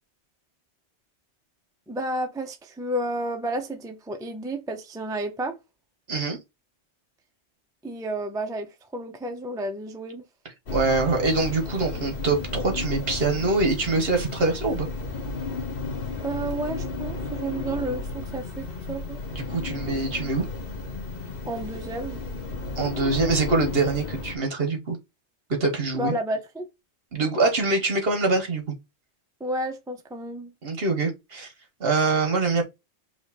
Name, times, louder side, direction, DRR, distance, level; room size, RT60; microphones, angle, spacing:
voice 1, 1.9-5.5 7.8-10.2 16.2-19.2 21.5-22.2 25.9-26.7 29.4-30.5, right 1 dB, 5° right, 0.5 m, -31 dB
voice 2, 6.1-6.4 10.7-14.9 19.3-20.4 22.8-25.0 25.6-26.1 27.1-28.6 30.6-31.5 31.8-32.6, right 3 dB, 60° right, 1.5 m, -24 dB
sound 1, 10.7-24.3, left 3 dB, 55° left, 1.2 m, -33 dB
5.0 x 2.5 x 4.1 m
omnidirectional pair, 1.1 m